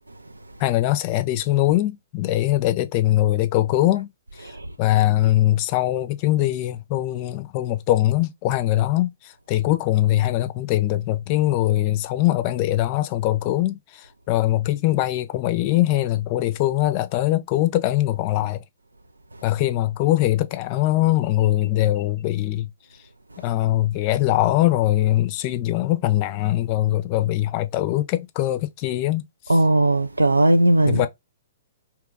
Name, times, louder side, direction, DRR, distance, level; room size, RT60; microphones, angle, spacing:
voice 1, 0.6-4.1 4.8-9.1 9.5-13.8 14.3-18.6 19.4-22.7 23.4-29.2 30.8-31.1, left 15 dB, 40° left, 0.4 m, -21 dB
voice 2, 29.5-31.1, right 1 dB, 90° right, 0.4 m, -18 dB
2.8 x 2.3 x 3.8 m
figure-of-eight pair, 115°, 0 cm